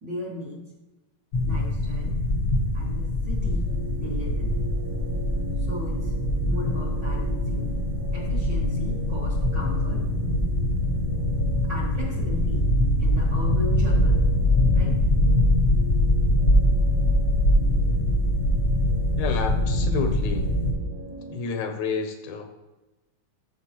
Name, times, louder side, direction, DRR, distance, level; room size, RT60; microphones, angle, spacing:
voice 1, 0.0-0.6 1.4-2.2 2.7-4.6 5.6-6.1 6.4-7.7 8.1-10.1 11.7-12.7 13.0-14.3 14.7-15.0, left 1 dB, 45° right, -4 dB, 1.8 m, -37 dB
sound 1, 1.3-20.7, left 1 dB, 50° left, 0.9 m, -23 dB
sound 2, 3.7-21.4, right 6 dB, 75° right, 2.6 m, -41 dB
voice 2, 19.2-20.5 21.3-22.4, left 4 dB, 75° left, 5 dB, 1.9 m, -29 dB
13.5 x 5.2 x 2.9 m, 1.1 s
omnidirectional pair, 3.4 m